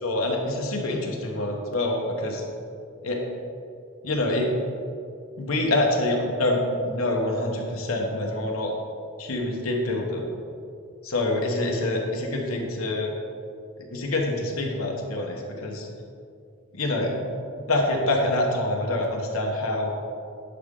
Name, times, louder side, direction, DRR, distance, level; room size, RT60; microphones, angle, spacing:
voice 1, 0.0-2.4 3.0-3.2 4.0-4.5 5.4-8.7 9.2-10.2 11.0-13.1 13.9-15.9 16.7-17.1 17.7-19.9, left 1 dB, 80° left, 0 dB, 1.2 m, -26 dB
10.5 x 4.9 x 3.8 m, 2.4 s
head